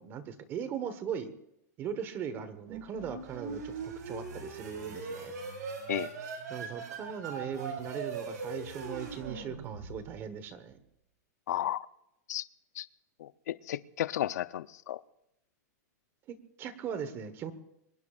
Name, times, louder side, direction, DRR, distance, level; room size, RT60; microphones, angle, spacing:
voice 1, 0.0-1.3 1.8-5.3 6.5-10.8 16.3-17.5, right 7 dB, 25° right, 1.2 m, -39 dB
sound 1, 2.6-10.3, right 5 dB, 90° right, 6.2 m, -40 dB
voice 2, 11.5-11.9 12.3-12.4 12.8-12.9 13.2-15.0, left 12 dB, 70° left, 0.7 m, -33 dB
24.0 x 20.5 x 2.5 m
supercardioid pair, 170°, 9 cm